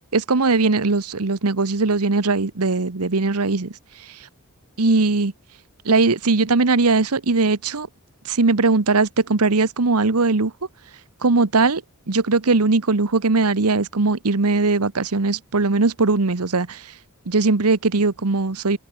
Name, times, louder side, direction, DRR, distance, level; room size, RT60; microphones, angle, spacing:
voice 1, 0.1-3.7 4.8-5.3 5.8-7.9 8.3-10.5 11.2-11.8 12.1-16.8 17.3-18.8, right 3 dB, 90° right, 1.1 m, -19 dB
open air
head